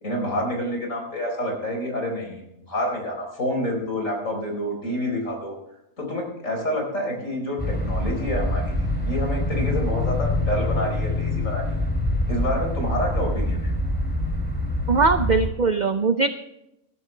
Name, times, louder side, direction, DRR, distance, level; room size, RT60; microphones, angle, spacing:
voice 1, 0.0-5.6 6.0-11.9 12.3-13.7, equal, 60° left, 1 dB, 4.6 m, -28 dB
sound 1, 7.6-15.5, left 1 dB, 5° left, 2.7 m, -25 dB
voice 2, 14.9-16.3, right 4 dB, 50° right, 9 dB, 0.5 m, -20 dB
20.0 x 12.0 x 3.3 m, 0.86 s
omnidirectional pair, 1.5 m